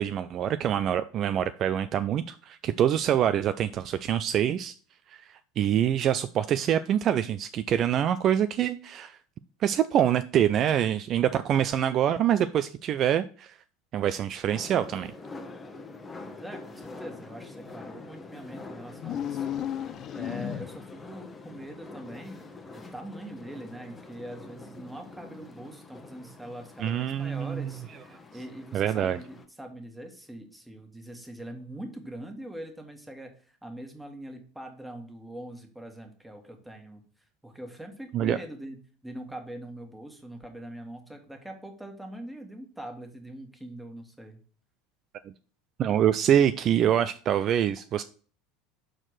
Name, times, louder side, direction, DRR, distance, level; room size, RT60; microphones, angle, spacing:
voice 1, 0.0-4.7 5.1-9.2 9.6-13.6 13.9-15.1 26.8-27.7 28.7-29.2 38.1-38.4 45.8-48.0, right 10 dB, 40° right, 12 dB, 0.4 m, -25 dB
sound 1, 14.5-29.5, left 3 dB, 20° left, 1.1 m, -45 dB
voice 2, 16.2-22.4 22.7-37.0 37.4-38.8 39.0-44.4, right 1 dB, 5° right, 3 dB, 1.7 m, -43 dB
sound 2, 18.9-21.0, left 10 dB, 40° left, 0.4 m, -33 dB
5.9 x 4.5 x 6.4 m, 0.41 s
figure-of-eight pair, 75°, 0 cm